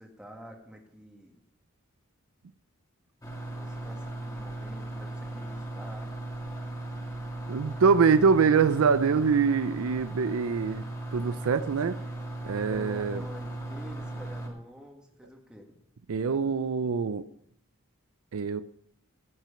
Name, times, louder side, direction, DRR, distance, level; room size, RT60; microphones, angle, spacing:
voice 1, 0.0-1.3 3.5-6.1 12.7-15.8, equal, 5° right, 1 dB, 1.8 m, -47 dB
sound 1, 3.2-14.5, right 2 dB, 15° left, 2.2 m, -37 dB
voice 2, 7.5-10.8 11.1-12.0 12.4-13.2 16.1-17.2 18.3-18.6, right 5 dB, 75° right, 14 dB, 0.4 m, -24 dB
15.0 x 6.1 x 5.7 m, 0.72 s
head